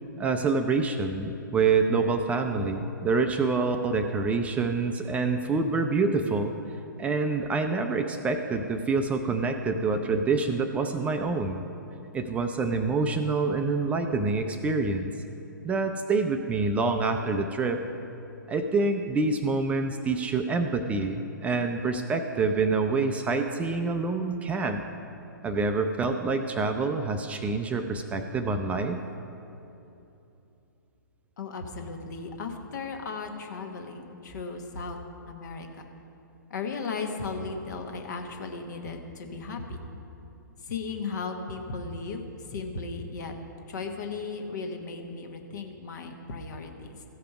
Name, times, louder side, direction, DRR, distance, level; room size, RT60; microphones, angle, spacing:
voice 1, 0.2-6.5 7.0-11.6 12.1-15.1 15.6-17.8 18.5-24.8 25.4-29.0, right 4 dB, 10° right, 6 dB, 0.4 m, -26 dB
voice 2, 31.4-35.0 35.3-35.8 36.5-39.8 40.6-43.3 43.7-47.0, left 4 dB, 60° left, 4 dB, 1.2 m, -36 dB
15.0 x 5.1 x 5.8 m, 2.9 s
figure-of-eight pair, 125°, 11 cm